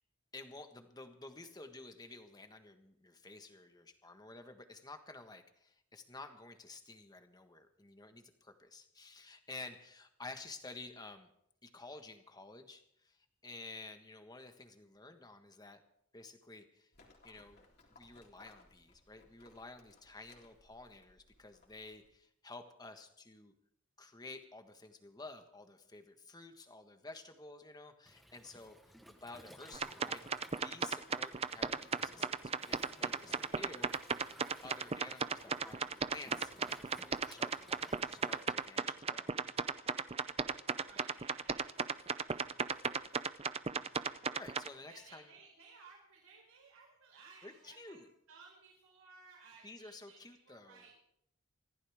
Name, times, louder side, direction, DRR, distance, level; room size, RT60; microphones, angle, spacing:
voice 1, 0.3-11.3 11.6-15.8 16.1-16.9 17.2-17.6 17.9-23.5 24.0-30.3 30.5-33.9 34.6-39.4 43.9-45.3 47.4-48.1 49.6-50.8, left 3 dB, 20° left, 7 dB, 1.4 m, -52 dB
Livestock farm animals working animals, 16.9-22.1, left 2 dB, 50° left, 3.6 m, -64 dB
Waves surf, 28.0-38.4, equal, ahead, 1.2 m, -58 dB
sound 1, 29.7-44.7, right 5 dB, 30° right, 0.6 m, -36 dB
voice 2, 40.8-43.0 44.9-48.0 48.3-50.2 50.4-51.0, right 4 dB, 85° right, -2 dB, 5.1 m, -59 dB
24.5 x 15.5 x 3.6 m, 0.74 s
head